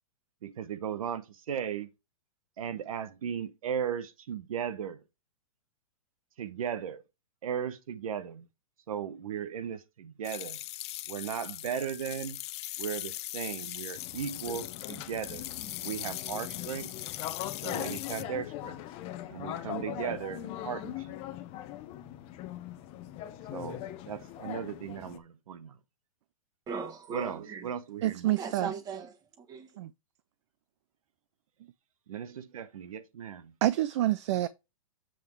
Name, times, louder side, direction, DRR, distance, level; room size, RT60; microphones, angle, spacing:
voice 1, 0.4-1.9 2.6-5.0 6.4-7.0 7.4-8.5 8.9-10.6 11.1-12.4 12.8-15.5 15.8-16.9 17.6-18.8 19.3-21.2 23.5-25.8 27.1-28.3 32.1-33.5, right 8 dB, 75° right, 0.9 m, -36 dB
sound 1, 10.2-18.2, left 16 dB, 50° left, 0.5 m, -40 dB
sound 2, 13.9-25.2, left 13 dB, 35° left, 0.8 m, -41 dB
voice 2, 26.7-27.7 28.3-29.7, right 5 dB, 20° right, 1.3 m, -38 dB
voice 3, 28.0-28.7 29.8-29.9 33.6-34.5, right 14 dB, 55° right, 0.4 m, -27 dB
7.7 x 3.6 x 4.5 m
hypercardioid pair, 135°, 18 cm